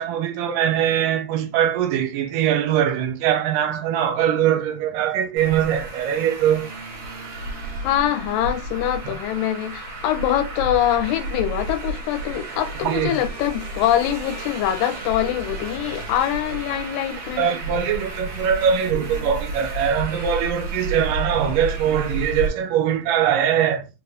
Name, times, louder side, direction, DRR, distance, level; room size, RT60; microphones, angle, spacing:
voice 1, 0.0-6.7 9.1-9.2 12.8-13.2 17.4-23.9, right 9 dB, 80° right, 2.2 m, -22 dB
Traffic noise roadway noise, 5.4-22.5, right 2 dB, 55° right, 1.6 m, -32 dB
voice 2, 7.8-17.4, left 11 dB, 85° left, 2.4 m, -24 dB
5.1 x 2.5 x 3.4 m
omnidirectional pair, 3.9 m